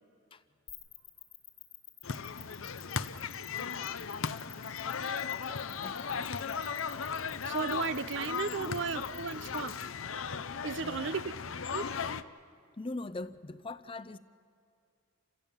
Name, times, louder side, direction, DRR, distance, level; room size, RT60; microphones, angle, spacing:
sound 1, 0.7-9.8, left 11 dB, 60° left, 2.1 m, -50 dB
sound 2, 2.0-12.2, left 6 dB, 80° left, 0.7 m, -37 dB
voice 1, 5.5-6.3 8.6-8.7 10.8-11.2 12.8-14.2, left 2 dB, 25° left, 13 dB, 0.6 m, -42 dB
voice 2, 7.4-9.8 10.6-11.3 11.7-11.9, right 5 dB, 60° right, 15 dB, 0.6 m, -35 dB
29.5 x 16.0 x 7.2 m, 2.4 s
head